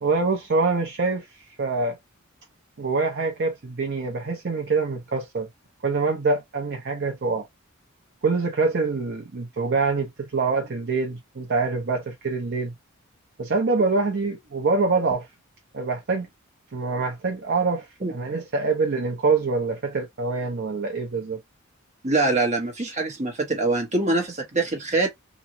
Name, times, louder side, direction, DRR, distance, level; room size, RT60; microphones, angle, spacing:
voice 1, 0.0-2.0 2.8-5.5 5.8-7.4 8.2-12.7 13.4-15.3 15.7-16.3 16.7-21.4, right 4 dB, 55° right, 0.6 m, -25 dB
voice 2, 22.0-25.1, right 2 dB, 35° right, 1.1 m, -24 dB
3.0 x 2.5 x 2.6 m
head